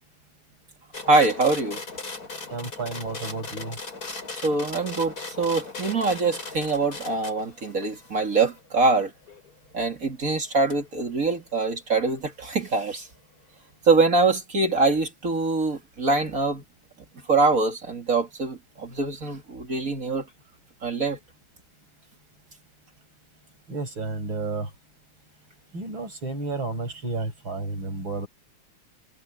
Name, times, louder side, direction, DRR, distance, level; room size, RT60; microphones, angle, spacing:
sound 1, 0.9-9.5 10.7-10.8, left 3 dB, 45° left, 5.4 m, -38 dB
voice 1, 1.0-1.8 4.4-9.1 9.7-13.1 13.9-16.6 17.3-20.2 20.8-21.2, right 3 dB, 40° right, 2.8 m, -24 dB
voice 2, 2.5-3.8 23.7-24.7 25.7-28.3, right 3 dB, 70° right, 8.5 m, -31 dB
omnidirectional pair, 2.3 m